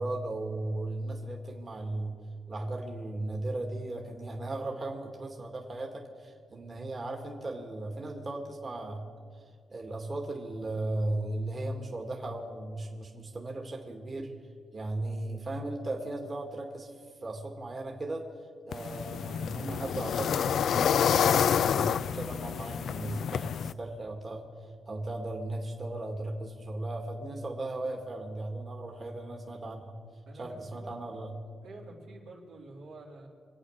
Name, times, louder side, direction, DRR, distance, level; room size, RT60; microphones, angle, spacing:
voice 1, 0.0-2.1 2.5-9.0 9.7-14.3 14.7-16.9 17.2-18.3 18.7-24.4 24.9-29.9 30.3-31.3, right 2 dB, 40° right, 1 dB, 1.9 m, -36 dB
sound 1, 18.7-23.7, left 8 dB, 75° left, 0.3 m, -28 dB
voice 2, 30.2-31.0 31.6-33.3, right 2 dB, 85° right, -2 dB, 3.4 m, -48 dB
25.0 x 8.6 x 6.4 m, 2.2 s
cardioid pair, 80°, 0 cm